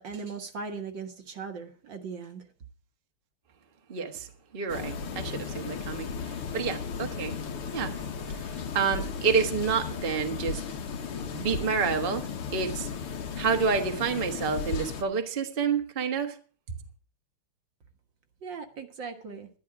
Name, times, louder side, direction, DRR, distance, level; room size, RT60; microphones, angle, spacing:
voice 1, 0.0-2.5 18.4-19.5, right 5 dB, 60° right, 5 dB, 2.0 m, -39 dB
voice 2, 3.9-4.3 4.5-7.4 7.7-8.0 8.3-10.6 11.3-12.9 13.4-16.3 16.7-16.8, right 5 dB, 30° right, 5 dB, 1.3 m, -29 dB
sound 1, 4.7-15.0, left 6 dB, 80° left, 2.3 m, -35 dB
12.0 x 11.5 x 4.8 m, 0.41 s
omnidirectional pair, 2.4 m